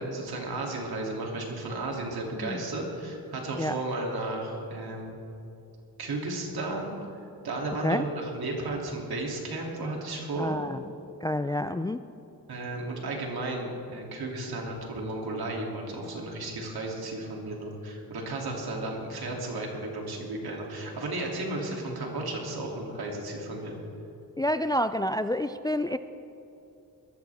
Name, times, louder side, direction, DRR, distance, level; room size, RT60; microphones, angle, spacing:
voice 1, 0.0-5.2 6.0-10.6 12.5-23.8, right 2 dB, 70° right, -1 dB, 3.1 m, -34 dB
voice 2, 10.4-10.8 11.2-12.0 24.4-26.0, left 1 dB, 10° left, 11 dB, 0.3 m, -28 dB
20.5 x 14.0 x 3.6 m, 2.8 s
cardioid pair, 85°, 38 cm